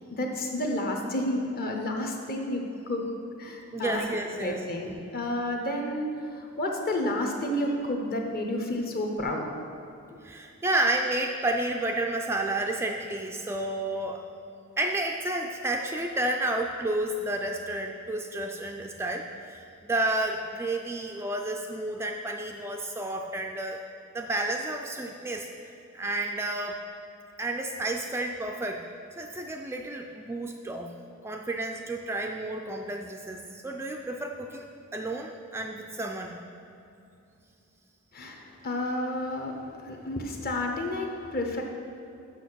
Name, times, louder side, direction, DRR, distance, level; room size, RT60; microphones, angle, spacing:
voice 1, 0.1-3.0 3.4-4.0 4.3-9.5 38.1-41.6, left 1 dB, 45° left, 2 dB, 1.0 m, -31 dB
voice 2, 3.7-4.6 10.2-14.2 14.8-23.8 24.1-25.5 25.9-26.8 27.4-28.8 29.2-30.9 31.2-36.4, right 2 dB, 10° right, 2 dB, 0.3 m, -31 dB
7.0 x 5.8 x 6.1 m, 2.7 s
head